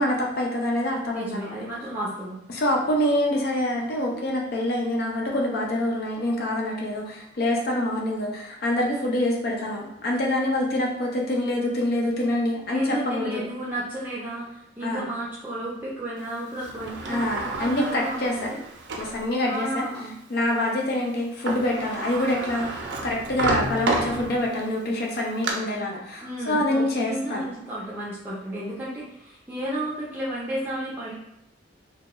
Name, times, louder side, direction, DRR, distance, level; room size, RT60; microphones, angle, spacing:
voice 1, 0.0-1.5 2.5-12.8 13.1-13.4 14.8-15.1 17.1-18.5 19.0-19.8 20.3-22.7 23.0-27.4, left 1 dB, 55° left, -1 dB, 0.4 m, -26 dB
voice 2, 1.1-2.4 12.7-18.6 19.4-20.1 26.2-31.1, right 1 dB, 10° right, -8 dB, 0.5 m, -32 dB
Sliding door, 16.6-19.2 19.8-19.9 21.2-21.3 21.5-24.6 25.1-25.5, right 3 dB, 65° right, 0.5 m, -30 dB
2.7 x 2.2 x 3.0 m, 0.81 s
head